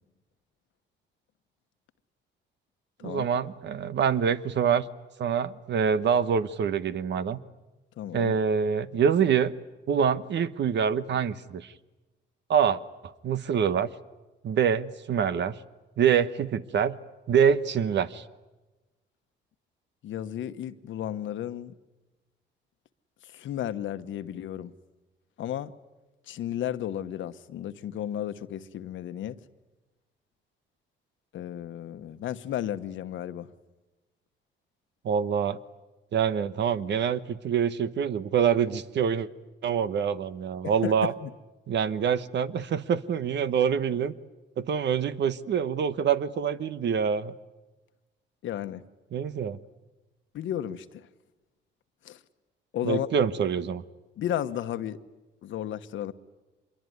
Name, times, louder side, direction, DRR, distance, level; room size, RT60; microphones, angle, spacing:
voice 1, 3.0-4.9 5.2-7.4 8.1-9.5 9.9-11.7 12.5-12.8 13.2-13.9 14.4-15.6 16.0-17.0 17.3-18.2 35.0-35.6 36.1-39.3 39.6-41.1 41.7-44.1 44.6-47.3 49.1-49.6 52.8-53.8, right 7 dB, 60° right, 1.2 m, -25 dB
voice 2, 8.0-8.3 20.0-21.8 23.2-24.7 25.4-25.7 26.3-29.4 31.3-33.5 40.6-41.3 48.4-48.8 50.3-51.1 52.0-52.2 52.7-53.1 54.2-55.0 55.4-56.1, left 11 dB, 75° left, 1.2 m, -33 dB
25.5 x 22.5 x 9.6 m
cardioid pair, 90°, 20 cm